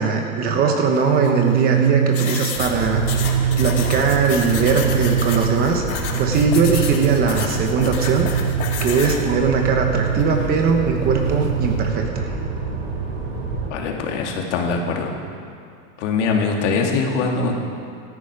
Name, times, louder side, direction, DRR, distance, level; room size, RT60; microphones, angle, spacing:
voice 1, 0.0-3.3 3.6-8.3 8.8-12.3, right 5 dB, 20° right, 3 dB, 1.0 m, -20 dB
sound 1, 0.9-11.9, right 9 dB, 50° right, 1.0 m, -24 dB
sound 2, 2.1-9.2, left 7 dB, 85° left, 2.2 m, -31 dB
sound 3, 2.5-13.7, right 4 dB, 65° right, 4.5 m, -28 dB
voice 2, 13.7-15.1 16.0-17.5, left 4 dB, 60° left, 1 dB, 2.5 m, -22 dB
17.0 x 13.5 x 4.9 m, 2.4 s
supercardioid pair, 160°, 41 cm